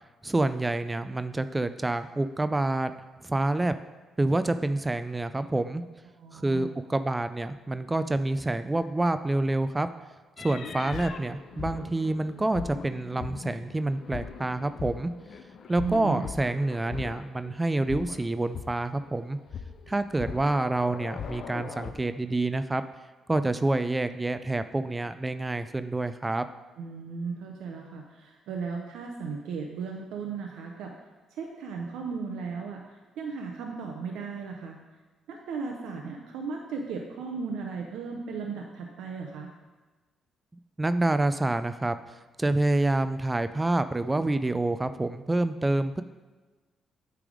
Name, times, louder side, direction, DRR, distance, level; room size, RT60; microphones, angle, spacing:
voice 1, 0.2-2.9 3.2-3.7 4.2-5.8 6.3-9.9 10.4-15.1 15.7-19.4 19.9-22.8 23.3-26.4 40.8-42.0 42.4-46.0, right 2 dB, 15° right, 11 dB, 0.3 m, -27 dB
voice 2, 6.2-6.7 15.8-16.2 26.8-30.9 31.3-32.8 33.2-34.8 35.3-39.5, right 5 dB, 85° right, 1 dB, 0.7 m, -36 dB
sound 1, 10.4-17.5 17.8-19.0 19.5-21.9, left 6 dB, 60° left, 0.5 m, -40 dB
8.6 x 3.4 x 4.9 m, 1.2 s
cardioid pair, 90°, 0 cm